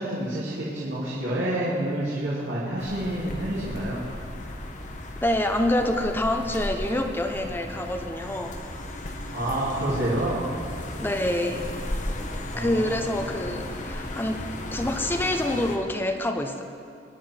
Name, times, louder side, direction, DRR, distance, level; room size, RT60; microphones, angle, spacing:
voice 1, 0.0-4.0 9.3-10.4 12.4-13.0, right 1 dB, 85° right, -8 dB, 2.7 m, -28 dB
sound 1, 2.8-15.8, left 1 dB, 45° left, 1.2 m, -35 dB
voice 2, 5.2-8.5 11.0-11.7 12.5-16.6, left 1 dB, 10° left, 4 dB, 0.8 m, -27 dB
23.0 x 10.0 x 4.5 m, 2.4 s
head